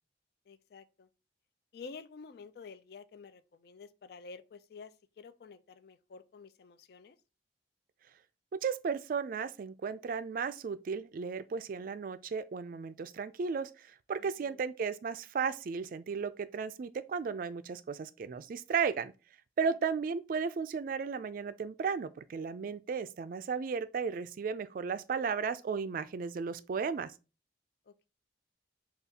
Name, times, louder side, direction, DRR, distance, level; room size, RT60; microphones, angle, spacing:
voice 1, 0.5-1.1 1.7-7.2 14.2-14.6 19.6-19.8 27.9-28.1, left 4 dB, 60° left, 0.4 m, -50 dB
voice 2, 8.5-19.1 19.6-27.1, right 5 dB, 50° right, 0.3 m, -35 dB
6.9 x 2.3 x 2.8 m
head